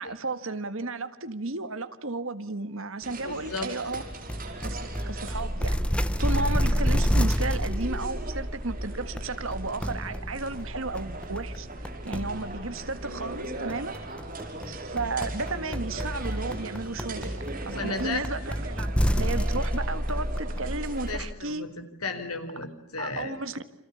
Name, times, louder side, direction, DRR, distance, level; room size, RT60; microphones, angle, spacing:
voice 1, 0.0-4.0 4.6-4.8 5.1-14.0 14.7-18.9 19.2-21.6 23.0-23.6, right 3 dB, 65° right, 1.7 m, -33 dB
sound 1, 3.0-21.2, right 2 dB, 40° right, 5.3 m, -40 dB
voice 2, 3.2-3.7 17.7-18.2 21.1-23.3, left 3 dB, 85° left, 4.4 m, -34 dB
sound 2, 3.9-21.3, equal, 5° left, 1.0 m, -30 dB
29.5 x 27.0 x 7.1 m
head